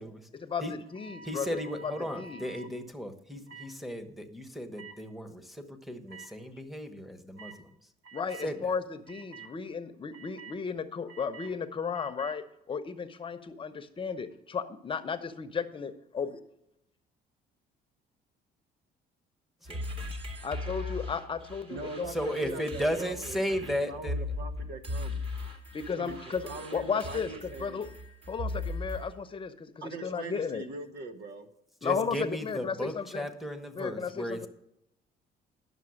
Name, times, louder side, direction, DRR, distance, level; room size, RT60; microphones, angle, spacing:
voice 1, 0.5-2.5 8.1-16.4 20.4-22.3 25.7-27.9 28.3-30.6 31.8-33.3 33.7-34.5, left 6 dB, 30° left, 9 dB, 0.8 m, -34 dB
sound 1, 0.9-2.7 3.5-3.7 4.7-4.9 6.1-6.2 7.4-7.6 8.0-8.5 9.1-9.5 10.1-10.6 11.1-11.5 11.9-12.4, right 5 dB, 90° right, 1.9 m, -48 dB
voice 2, 1.2-7.5 8.4-8.5 19.7-19.8 22.1-24.2 31.8-34.5, equal, ahead, 4 dB, 1.2 m, -35 dB
sound 2, 19.6-29.1, left 2 dB, 35° right, 2.5 m, -38 dB
voice 3, 21.7-25.2 25.9-27.8 29.8-31.5, right 4 dB, 75° right, 9 dB, 1.3 m, -42 dB
11.0 x 6.5 x 6.4 m, 0.80 s
cardioid pair, 110°, 17 cm